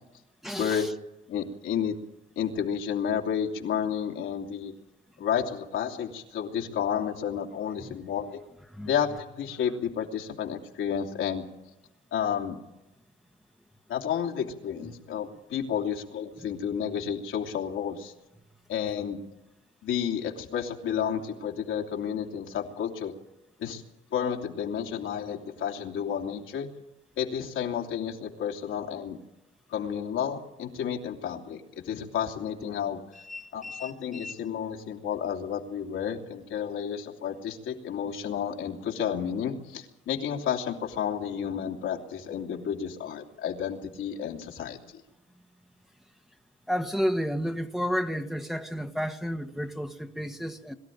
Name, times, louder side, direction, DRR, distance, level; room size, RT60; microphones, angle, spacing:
voice 1, 0.4-0.9 7.8-7.9 8.7-8.9 33.1-34.3 46.7-50.7, equal, ahead, 1.3 m, -32 dB
voice 2, 1.3-1.9 2.4-4.7 5.2-8.4 8.8-11.4 12.1-12.6 13.9-18.1 18.7-19.2 19.8-23.1 23.6-23.8 24.1-26.7 27.2-29.2 29.7-33.2 33.5-44.8, left 8 dB, 80° left, 2.8 m, -31 dB
22.5 x 13.0 x 9.2 m
cardioid pair, 90°, 20 cm